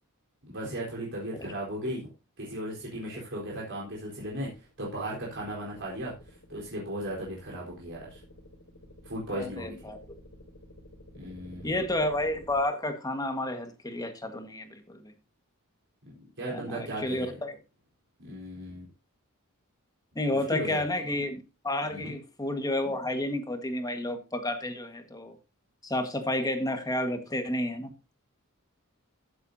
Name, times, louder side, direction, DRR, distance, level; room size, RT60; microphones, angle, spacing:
voice 1, 0.5-2.1 2.4-6.1 6.5-8.2 9.0-9.9 11.1-11.9 16.1-17.3 18.2-18.9 20.3-20.8 21.9-22.1, right 1 dB, 60° right, -4 dB, 4.2 m, -36 dB
sound 1, 3.9-12.6, left 1 dB, 65° left, 3.0 m, -52 dB
voice 2, 9.3-10.0 11.6-15.0 16.5-17.6 20.1-25.4 25.8-27.9, left 1 dB, 15° left, 6 dB, 1.6 m, -31 dB
15.5 x 7.9 x 2.7 m, 0.29 s
head